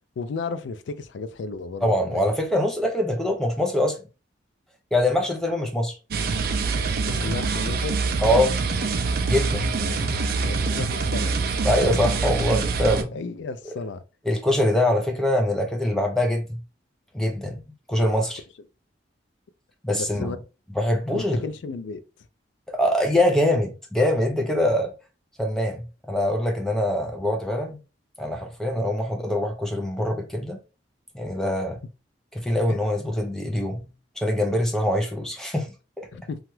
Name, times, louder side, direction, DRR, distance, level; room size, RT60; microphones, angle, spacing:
voice 1, 0.2-2.2 7.0-8.0 9.7-10.0 10.4-11.4 13.1-14.0 18.0-18.2 19.9-20.4 21.1-22.0 32.7-32.8 36.1-36.4, left 4 dB, 75° left, 0.4 m, -34 dB
voice 2, 1.8-4.0 4.9-6.0 8.2-8.6 9.3-9.7 11.6-13.2 14.3-16.6 17.1-17.6 17.9-18.4 19.8-20.3 20.7-21.4 22.7-24.9 25.4-27.8 28.2-30.6 31.1-31.8 32.3-33.9 34.2-36.1, left 1 dB, 5° left, 0.5 m, -23 dB
sound 1, 6.1-13.0, right 4 dB, 55° right, 0.4 m, -25 dB
2.9 x 2.3 x 3.1 m
head